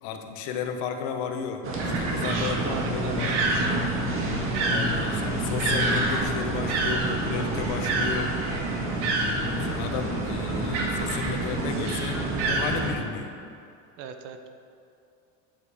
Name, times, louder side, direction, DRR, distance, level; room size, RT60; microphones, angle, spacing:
voice 1, 0.0-3.7 4.7-8.3 9.2-12.2 12.5-13.3, left 6 dB, 75° left, 6 dB, 1.1 m, -34 dB
sound 1, 1.6-12.9, right 1 dB, 35° right, 1.8 m, -29 dB
sound 2, 1.8-13.0, right 2 dB, 90° right, 2.2 m, -30 dB
voice 2, 2.3-3.7 14.0-14.5, right 6 dB, 60° right, 7 dB, 1.0 m, -38 dB
9.1 x 7.4 x 5.0 m, 2.5 s
supercardioid pair, 135°, 35 cm